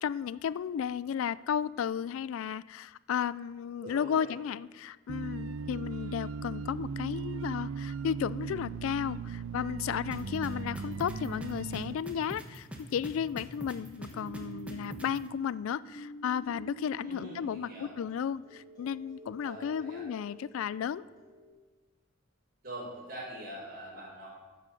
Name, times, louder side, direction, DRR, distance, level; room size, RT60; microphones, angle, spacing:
voice 1, 0.0-21.0, left 8 dB, 80° left, 18 dB, 0.3 m, -34 dB
voice 2, 3.8-4.3 17.0-18.0 19.4-20.0 22.6-24.3, right 1 dB, 45° right, -10 dB, 4.6 m, -43 dB
sound 1, 5.1-11.9, right 5 dB, 75° right, 0.5 m, -38 dB
sound 2, 10.1-15.2, equal, 5° right, 1.3 m, -42 dB
sound 3, 10.3-11.1 13.7-21.5, right 4 dB, 20° left, 3.4 m, -49 dB
14.5 x 7.5 x 6.5 m, 1.3 s
head